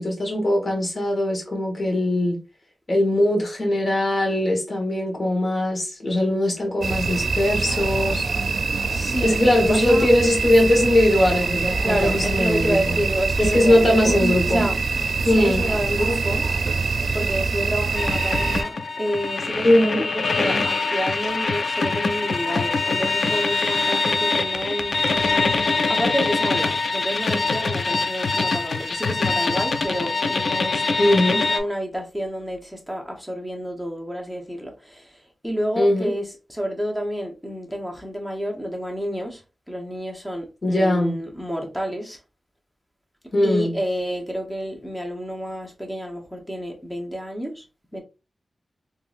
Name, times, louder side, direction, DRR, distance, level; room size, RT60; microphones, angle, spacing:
voice 1, 0.0-2.4 2.9-8.2 9.2-13.0 13.4-14.6 15.2-15.6 19.6-20.0 31.0-31.4 35.8-36.1 40.6-41.2 43.3-43.7, left 1 dB, 45° left, 1.4 m, -20 dB
sound 1, 6.8-18.6, right 4 dB, 70° right, 0.5 m, -24 dB
voice 2, 8.9-10.1 11.8-16.6 17.1-25.3 25.9-39.4 39.7-42.2 43.4-47.6 47.9-48.0, equal, 5° left, 0.9 m, -29 dB
sound 2, 17.9-31.6, left 3 dB, 65° left, 0.4 m, -23 dB
3.7 x 2.8 x 2.5 m
wide cardioid pair, 110°, 0 cm